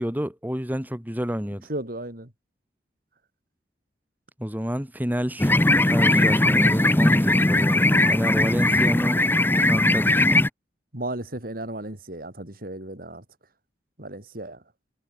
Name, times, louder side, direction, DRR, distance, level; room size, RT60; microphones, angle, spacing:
voice 1, 0.0-1.7 4.4-5.5 5.9-9.2 9.6-10.4, equal, 10° right, 2.8 m, -29 dB
voice 2, 1.7-2.3 10.9-13.2 14.0-14.6, right 1 dB, 55° right, 4.3 m, -34 dB
sound 1, 5.4-10.5, left 2 dB, 10° left, 0.7 m, -19 dB
head